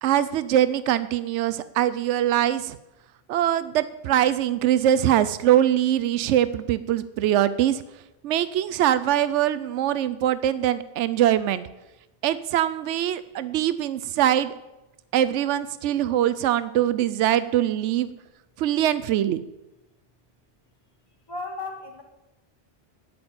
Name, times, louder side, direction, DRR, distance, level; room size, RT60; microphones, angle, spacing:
voice 1, 0.0-2.8 3.3-7.8 8.2-11.6 12.2-14.5 15.1-18.1 18.6-19.4, right 11 dB, 85° right, 14 dB, 0.9 m, -22 dB
voice 2, 21.3-22.0, left 3 dB, 20° left, 3 dB, 1.7 m, -34 dB
9.2 x 8.6 x 8.8 m, 0.99 s
omnidirectional pair, 1.2 m